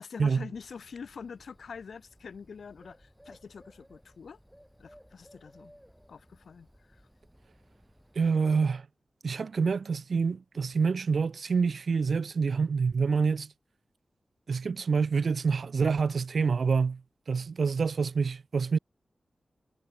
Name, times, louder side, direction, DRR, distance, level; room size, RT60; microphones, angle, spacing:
voice 1, 0.0-4.4 4.8-5.7 6.1-7.0, left 6 dB, 90° left, 1.0 m, -45 dB
Bird, 0.5-8.3, equal, ahead, 5.4 m, -59 dB
voice 2, 8.2-8.9 9.2-13.5 14.5-17.0 17.3-18.8, right 5 dB, 70° right, 0.3 m, -27 dB
wide cardioid pair, 115°, 0 cm